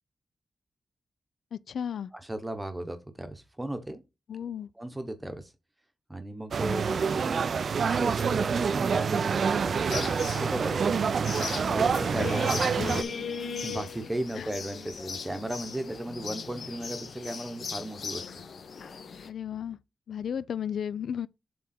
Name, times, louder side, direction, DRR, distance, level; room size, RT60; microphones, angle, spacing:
voice 1, 1.5-2.1 4.3-4.7 14.4-14.5 19.3-19.8 20.1-21.3, left 8 dB, 85° left, 0.3 m, -34 dB
voice 2, 2.1-4.0 4.8-5.5 6.1-7.5 7.8-10.9 11.6-12.7 13.6-18.3, right 1 dB, 10° right, 0.8 m, -36 dB
sound 1, 6.5-13.0, right 6 dB, 55° right, 0.3 m, -27 dB
sound 2, 9.9-19.3, left 5 dB, 60° left, 0.8 m, -37 dB
7.5 x 3.6 x 4.2 m
wide cardioid pair, 165°, 0 cm